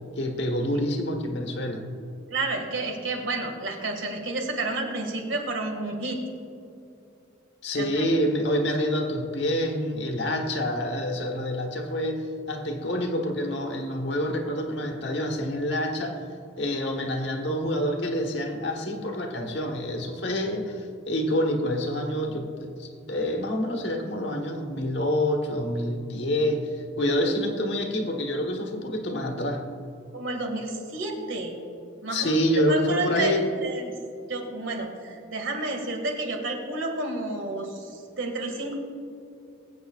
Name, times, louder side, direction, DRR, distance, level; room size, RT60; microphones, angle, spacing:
voice 1, 0.0-1.9 7.6-16.2 16.6-29.6 32.1-33.5, equal, 60° left, 2 dB, 1.3 m, -27 dB
voice 2, 2.3-6.2 7.7-8.0 27.0-27.2 30.1-31.5 32.0-32.3 32.7-33.9 34.3-38.7, right 2 dB, 80° right, 2 dB, 2.0 m, -30 dB
22.5 x 8.0 x 2.4 m, 2.6 s
head